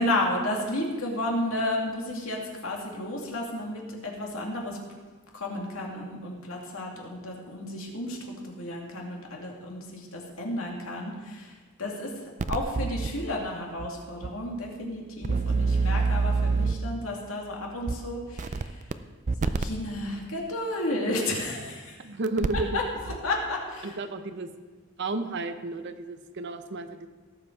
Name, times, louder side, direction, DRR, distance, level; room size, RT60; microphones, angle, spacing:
voice 1, 0.0-4.8 5.3-11.5 11.8-18.8 19.4-22.0 22.7-24.0, left 1 dB, 75° left, -1 dB, 2.5 m, -32 dB
sound 1, 12.4-13.1 13.8-13.9 14.2-14.3 15.2-16.9 17.9-18.0 18.4-18.9 19.3-19.7 21.2-21.3 22.3-22.7 23.0-23.2, right 4 dB, 35° right, 0.4 m, -26 dB
voice 2, 15.3-15.8 22.0-22.8 23.8-24.5 25.0-27.1, right 2 dB, 55° right, 9 dB, 0.8 m, -33 dB
17.5 x 7.4 x 4.6 m, 1.4 s
head